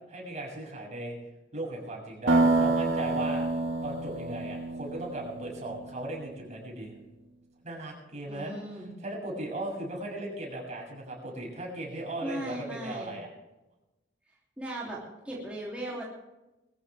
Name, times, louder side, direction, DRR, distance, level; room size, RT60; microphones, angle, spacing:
voice 1, 0.1-1.2 1.5-3.4 3.8-7.0 7.6-8.5 9.0-13.3, right 1 dB, 40° right, -1 dB, 6.8 m, -37 dB
sound 1, 2.3-6.1, right 2 dB, 75° right, 1.9 m, -27 dB
voice 2, 8.3-8.9 12.2-13.1 14.6-15.0 15.2-16.1, right 1 dB, 5° right, -6 dB, 3.1 m, -37 dB
21.5 x 14.5 x 3.5 m, 1.0 s
head